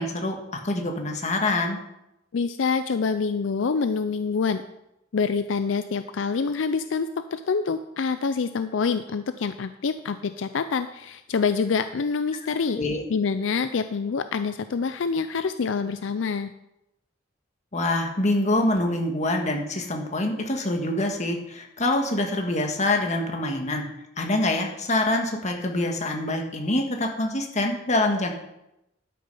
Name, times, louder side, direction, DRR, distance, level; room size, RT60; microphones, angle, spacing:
voice 1, 0.0-1.8 12.8-13.0 17.7-23.8 24.2-28.3, left 2 dB, 40° left, 3 dB, 1.6 m, -25 dB
voice 2, 2.3-4.6 5.1-12.8 13.1-16.5, left 5 dB, 75° left, 11 dB, 0.5 m, -26 dB
12.0 x 6.5 x 5.4 m, 0.87 s
head